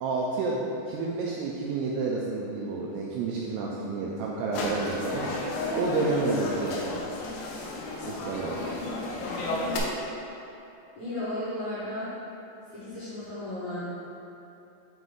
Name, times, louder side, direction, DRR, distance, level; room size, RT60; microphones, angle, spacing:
voice 1, 0.0-5.4 5.8-7.0 8.0-8.6, right 3 dB, 85° right, -3 dB, 2.4 m, -30 dB
sound 1, 4.5-9.8, left 2 dB, 85° left, 3.0 m, -33 dB
voice 2, 11.0-12.1 12.7-13.8, left 1 dB, 60° left, -12 dB, 2.0 m, -34 dB
7.6 x 3.1 x 5.3 m, 2.8 s
omnidirectional pair, 5.1 m